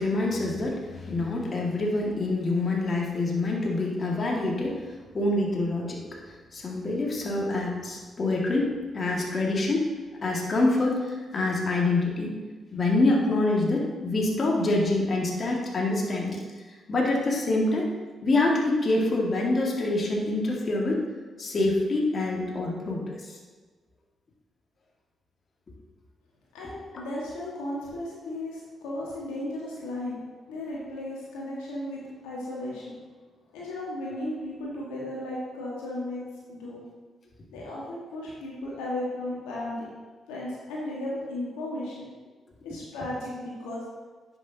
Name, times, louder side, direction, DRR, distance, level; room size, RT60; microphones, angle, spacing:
voice 1, 0.0-9.9 10.2-12.3 12.7-16.4 16.9-17.9 18.2-21.0 21.4-23.4, left 2 dB, 45° left, -2 dB, 1.8 m, -26 dB
voice 2, 26.5-30.2 30.5-33.0 33.5-36.2 36.5-36.8 37.5-39.9 40.3-42.0 42.6-43.8, left 1 dB, 85° left, -5 dB, 1.5 m, -35 dB
9.9 x 6.4 x 2.8 m, 1.4 s
hypercardioid pair, 50°, 0 cm